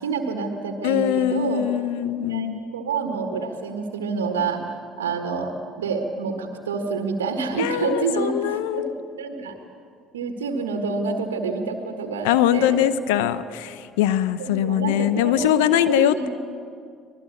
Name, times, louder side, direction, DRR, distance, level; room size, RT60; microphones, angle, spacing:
voice 1, 0.0-1.6 2.3-8.8 9.2-9.6 10.1-12.8 14.4-16.3, right 4 dB, 85° right, 5 dB, 1.6 m, -28 dB
voice 2, 0.8-2.6 7.6-9.0 12.2-16.3, left 11 dB, 75° left, 14 dB, 0.7 m, -22 dB
25.0 x 19.0 x 8.4 m, 2.3 s
hypercardioid pair, 60°, 0 cm